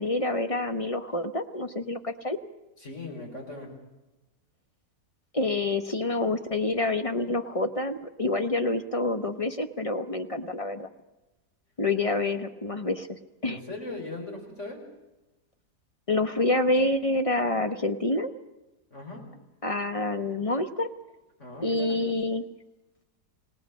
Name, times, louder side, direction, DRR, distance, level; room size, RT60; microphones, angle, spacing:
voice 1, 0.0-2.4 5.3-10.9 11.8-13.1 13.4-13.6 16.1-18.3 19.6-20.9 21.6-22.4, left 2 dB, 30° left, 8 dB, 0.7 m, -27 dB
voice 2, 2.8-3.7 13.4-14.8 18.9-19.2 21.4-22.0, left 2 dB, 45° left, 2 dB, 5.3 m, -39 dB
28.0 x 18.0 x 6.2 m, 1.1 s
omnidirectional pair, 1.8 m